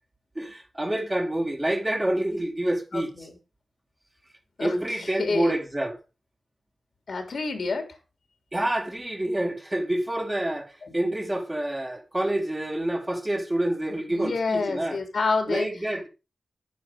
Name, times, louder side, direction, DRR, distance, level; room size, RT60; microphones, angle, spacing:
voice 1, 0.4-3.1 4.6-6.0 8.5-15.0 15.5-16.1, right 1 dB, 15° right, 2.3 m, -27 dB
voice 2, 2.9-3.4 4.6-5.5 7.1-8.0 10.8-10.9 14.1-15.7, left 4 dB, 70° left, 3.2 m, -28 dB
10.5 x 9.7 x 5.3 m
wide cardioid pair, 130°, 0 cm